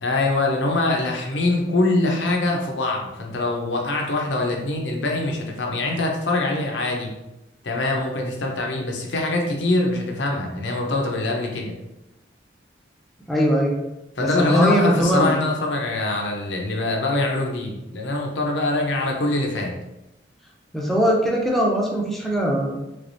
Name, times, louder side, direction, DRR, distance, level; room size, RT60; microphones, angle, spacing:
voice 1, 0.0-7.1 7.6-11.7 14.2-19.7, left 2 dB, 85° left, 0 dB, 0.7 m, -23 dB
voice 2, 13.3-13.8 14.2-15.4 20.7-22.8, equal, ahead, -2 dB, 0.5 m, -21 dB
3.3 x 3.3 x 2.6 m, 0.94 s
head